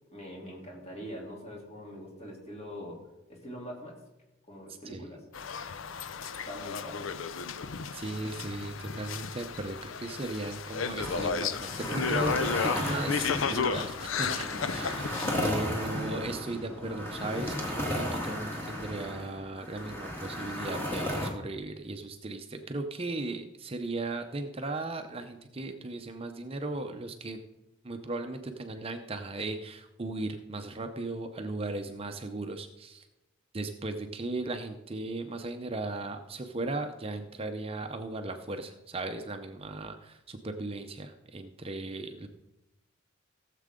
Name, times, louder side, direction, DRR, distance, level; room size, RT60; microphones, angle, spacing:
voice 1, 0.1-3.0 3.3-4.0 4.5-5.2 6.4-7.1, equal, 35° left, -2 dB, 3.1 m, -43 dB
sound 1, 5.3-15.5, left 5 dB, 80° left, 0.6 m, -33 dB
voice 2, 7.9-27.4 27.8-33.1 33.5-42.3, right 2 dB, 30° right, 6 dB, 0.7 m, -37 dB
sound 2, 11.0-21.3, left 1 dB, 10° left, 2.0 m, -35 dB
16.5 x 7.5 x 3.7 m, 0.98 s
head